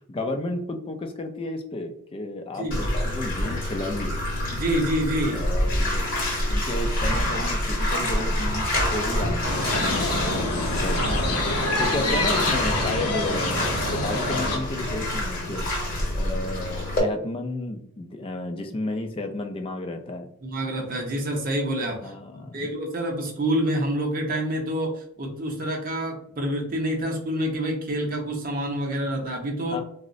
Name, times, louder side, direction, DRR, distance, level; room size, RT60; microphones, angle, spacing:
voice 1, 0.1-4.2 5.3-6.1 6.5-8.7 8.9-11.4 11.8-15.7 16.1-20.3 22.0-22.7 29.7-29.8, left 2 dB, 25° left, 5 dB, 0.3 m, -32 dB
Bathtub (filling or washing), 2.7-17.0, left 1 dB, 40° left, 0.8 m, -27 dB
voice 2, 4.5-5.4 20.4-22.1 22.5-29.8, right 1 dB, 40° right, 1 dB, 0.6 m, -27 dB
sound 1, 9.5-14.6, left 2 dB, 90° left, 0.6 m, -27 dB
3.7 x 2.0 x 2.5 m, 0.70 s
head